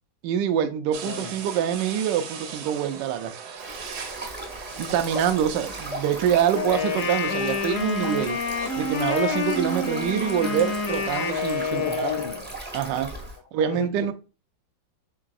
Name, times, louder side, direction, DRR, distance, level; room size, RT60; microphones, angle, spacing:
voice 1, 0.2-3.4 4.8-8.4 8.8-12.1 12.7-13.1 13.5-14.1, right 9 dB, 75° right, 1.1 m, -25 dB
sound 1, 0.9-11.7, right 7 dB, 90° right, 1.5 m, -40 dB
Stream, 3.6-13.4, right 1 dB, 15° right, 0.4 m, -37 dB
Wind instrument woodwind instrument, 6.5-12.4, left 4 dB, 55° left, 0.9 m, -28 dB
voice 2, 11.7-12.5 13.6-14.1, left 8 dB, 75° left, 1.2 m, -33 dB
4.5 x 3.9 x 2.4 m
omnidirectional pair, 2.2 m